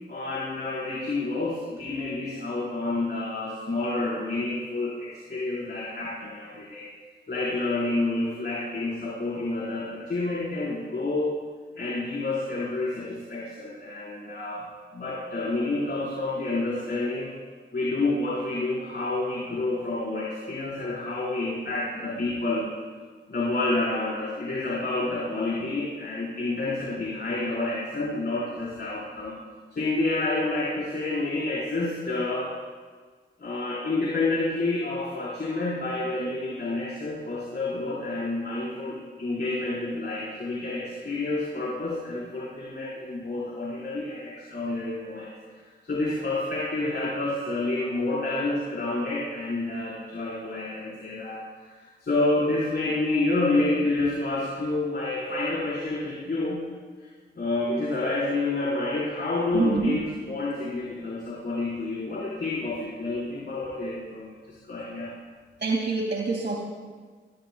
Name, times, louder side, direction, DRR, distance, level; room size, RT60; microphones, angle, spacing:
voice 1, 0.1-6.9 7.3-11.3 11.7-14.7 14.9-17.3 17.7-22.7 23.3-29.4 29.7-32.5 33.4-45.3 45.8-56.7 57.0-57.1 57.4-65.1, left 2 dB, 55° left, -7 dB, 4.7 m, -29 dB
voice 2, 59.5-60.0 65.6-66.6, right 3 dB, 55° right, -2 dB, 2.4 m, -25 dB
24.5 x 20.5 x 2.4 m, 1.5 s
cardioid pair, 70°, 21 cm